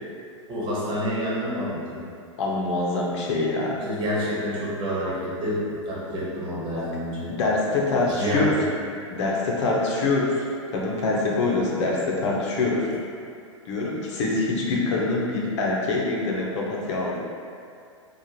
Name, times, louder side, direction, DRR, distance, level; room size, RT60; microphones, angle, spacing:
voice 1, 0.5-2.0 3.8-7.4 8.0-8.6, equal, 30° right, -7 dB, 1.3 m, -28 dB
voice 2, 2.4-3.8 6.7-6.8 7.3-8.5 9.1-12.9 13.7-17.2, left 3 dB, 65° left, -3 dB, 0.9 m, -25 dB
4.6 x 2.5 x 3.0 m, 2.3 s
hypercardioid pair, 105°, 16 cm